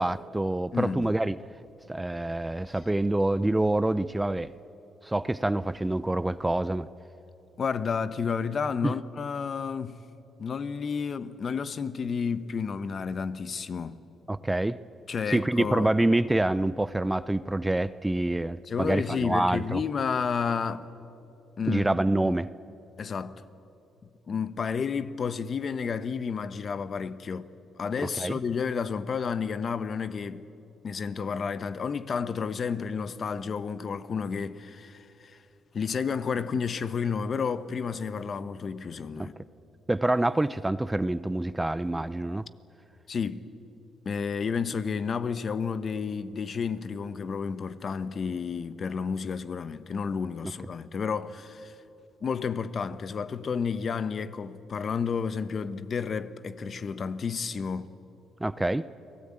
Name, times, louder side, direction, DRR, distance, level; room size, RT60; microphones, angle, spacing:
voice 1, 0.0-1.4 1.9-4.5 5.0-6.9 8.8-9.0 14.3-14.8 15.3-19.8 21.7-22.5 28.2-28.4 39.2-39.3 39.9-42.5 58.4-58.9, right 1 dB, 10° right, 0.6 m, -26 dB
voice 2, 0.7-1.1 7.6-10.0 10.4-14.0 15.1-15.9 18.7-20.9 21.6-22.4 23.0-23.4 24.3-27.5 27.8-30.4 30.8-35.4 35.7-39.3 43.1-43.5 44.0-51.7 52.2-57.9, left 6 dB, 45° left, 1.0 m, -31 dB
30.0 x 19.0 x 8.8 m
cardioid pair, 90°, 0 cm